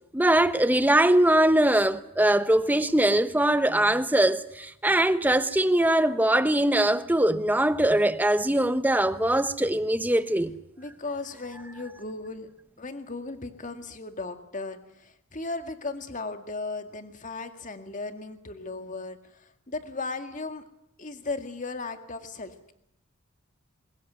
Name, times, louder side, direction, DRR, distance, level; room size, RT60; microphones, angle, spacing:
voice 1, 0.1-10.5, right 1 dB, 10° right, 0.9 m, -22 dB
voice 2, 10.8-12.5 12.8-20.6 21.0-22.7, left 3 dB, 35° left, 2.0 m, -36 dB
23.0 x 20.0 x 9.3 m
head